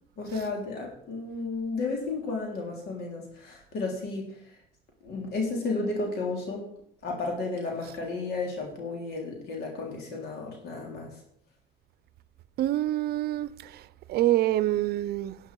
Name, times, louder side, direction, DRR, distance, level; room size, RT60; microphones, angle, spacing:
voice 1, 0.2-4.3 5.0-6.7 7.0-11.1, left 3 dB, 70° left, 3.6 m, -33 dB
voice 2, 12.6-13.8 14.1-15.4, right 14 dB, 70° right, 0.6 m, -26 dB
12.0 x 9.8 x 4.8 m
cardioid pair, 110°, 17 cm